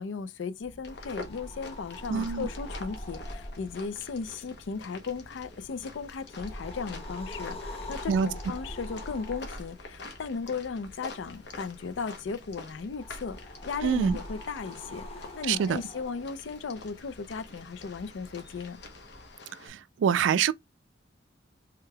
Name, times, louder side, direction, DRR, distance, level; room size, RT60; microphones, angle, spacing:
voice 1, 0.0-18.8, left 5 dB, 85° left, 0.4 m, -36 dB
sound 1, 0.6-19.3, left 1 dB, 30° left, 0.6 m, -44 dB
sound 2, 0.8-19.7, left 3 dB, 60° left, 0.9 m, -47 dB
voice 2, 2.1-2.5 8.1-8.3 13.8-14.2 15.5-15.8 19.7-20.5, right 7 dB, 80° right, 0.3 m, -25 dB
3.4 x 3.2 x 2.2 m
head